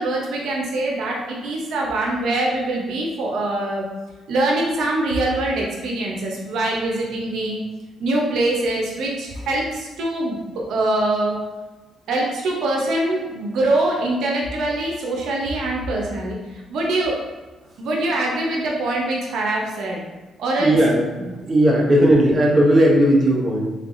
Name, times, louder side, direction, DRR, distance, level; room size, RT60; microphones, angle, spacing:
voice 1, 0.0-3.9 4.3-7.6 8.0-11.4 12.1-16.4 16.7-17.2 17.8-20.0 20.4-20.8, right 2 dB, 80° right, -1 dB, 0.7 m, -23 dB
voice 2, 20.6-23.7, right 1 dB, 25° right, -2 dB, 0.9 m, -16 dB
3.7 x 3.3 x 2.6 m, 1.2 s
cardioid pair, 90°, 0 cm